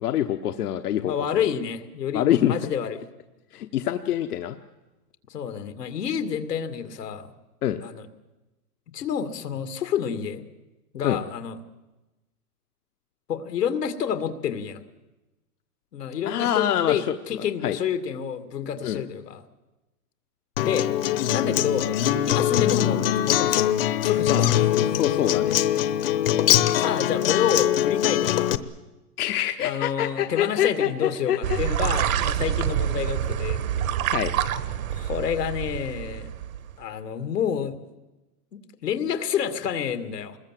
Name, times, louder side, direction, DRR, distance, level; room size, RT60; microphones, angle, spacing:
voice 1, 0.0-1.4 2.1-2.6 3.5-4.6 7.6-7.8 11.0-11.2 16.2-17.1 17.6-17.8 18.8-19.0 24.3-25.6 29.2-31.9 34.1-34.3, left 11 dB, 70° left, 8 dB, 1.1 m, -26 dB
voice 2, 1.1-3.0 5.3-7.3 7.8-8.1 8.9-10.4 10.9-11.6 13.3-14.8 15.9-19.4 20.6-20.9 21.3-21.9 22.3-23.7 24.0-24.7 26.8-28.6 29.6-33.6 34.9-36.3 36.8-37.8 38.5-40.4, left 8 dB, 90° left, 10 dB, 2.4 m, -29 dB
Acoustic guitar, 20.6-28.6, left 12 dB, 35° left, 0.9 m, -22 dB
sound 1, 31.4-36.7, right 10 dB, 60° right, 1.4 m, -27 dB
26.5 x 21.0 x 7.6 m, 1.1 s
hypercardioid pair, 165°, 47 cm